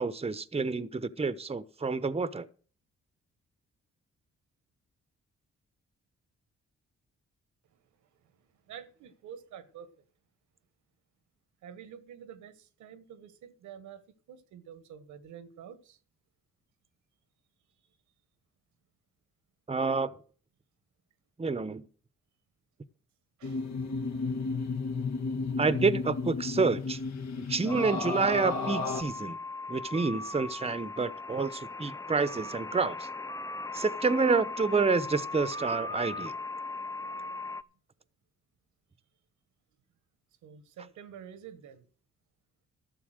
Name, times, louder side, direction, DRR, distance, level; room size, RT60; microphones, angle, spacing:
voice 1, 0.0-2.5 19.7-20.1 21.4-21.9 25.6-27.0 27.5-29.4 29.7-33.1 33.7-36.3, right 4 dB, 20° right, 0.9 m, -28 dB
voice 2, 8.7-9.9 11.6-14.0 14.3-16.0 23.4-23.7 40.4-41.8, right 8 dB, 85° right, 1.3 m, -48 dB
sound 1, 23.4-29.0, left 4 dB, 65° left, 1.8 m, -33 dB
sound 2, 27.7-37.6, left 2 dB, 10° left, 0.6 m, -38 dB
12.5 x 7.1 x 6.4 m
supercardioid pair, 60°, 29 cm